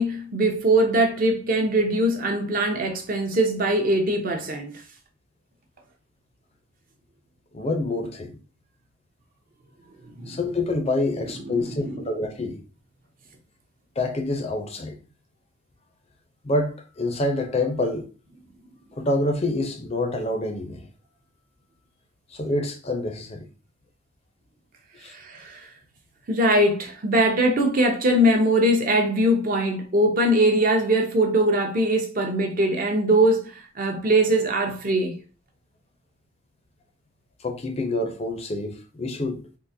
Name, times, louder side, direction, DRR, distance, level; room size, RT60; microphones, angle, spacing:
voice 1, 0.0-4.8 10.2-10.4 11.4-12.1 25.1-25.7 26.3-35.2, right 1 dB, 45° right, 0.6 m, -22 dB
voice 2, 7.5-8.4 10.3-12.6 14.0-15.0 16.4-18.0 18.9-20.9 22.3-23.5 25.0-25.1 37.4-39.4, left 2 dB, 30° left, 0.5 m, -27 dB
3.7 x 2.4 x 2.6 m
head